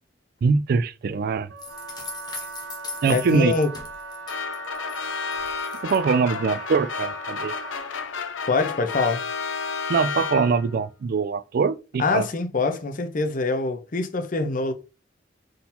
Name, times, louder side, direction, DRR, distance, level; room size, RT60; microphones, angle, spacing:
voice 1, 0.4-1.5 3.0-3.5 5.8-7.5 9.9-12.3, right 5 dB, 50° right, 0.3 m, -23 dB
Wind instrument woodwind instrument, 1.5-8.0, right 4 dB, 80° right, 0.8 m, -39 dB
sound 1, 1.6-5.0 5.3-6.0, left 3 dB, 20° left, 0.9 m, -39 dB
voice 2, 3.1-3.7 8.5-9.3 12.0-14.7, left 3 dB, 45° left, 0.6 m, -24 dB
sound 2, 4.3-10.8, left 5 dB, 85° left, 0.6 m, -31 dB
3.8 x 2.7 x 4.2 m
head